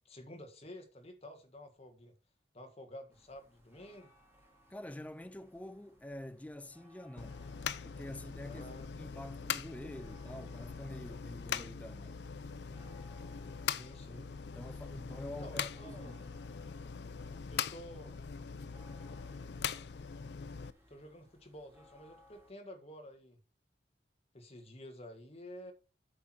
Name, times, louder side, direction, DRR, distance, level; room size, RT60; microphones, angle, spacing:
voice 1, 0.0-2.1 2.5-4.1 8.4-9.2 13.6-14.3 15.4-16.2 17.5-18.2 20.9-23.4 24.3-25.7, equal, 35° left, 1.5 m, -51 dB
sound 1, 3.1-22.5, equal, 15° right, 2.3 m, -65 dB
voice 2, 4.7-7.4 7.8-12.3 14.5-16.3, left 1 dB, 10° left, 0.4 m, -47 dB
sound 2, 7.2-20.7, left 7 dB, 65° left, 0.5 m, -42 dB
8.5 x 5.8 x 4.4 m
head